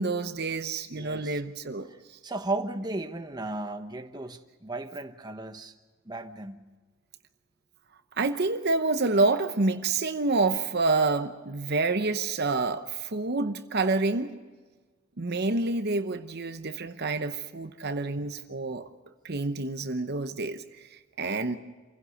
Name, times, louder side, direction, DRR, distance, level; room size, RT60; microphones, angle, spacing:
voice 1, 0.0-1.9 8.2-14.3 15.2-18.9 19.2-21.6, right 3 dB, 50° right, 9 dB, 0.9 m, -28 dB
voice 2, 0.9-1.4 2.2-5.7 6.1-6.6, right 2 dB, 20° right, 7 dB, 1.0 m, -35 dB
27.0 x 16.5 x 6.5 m, 1.3 s
head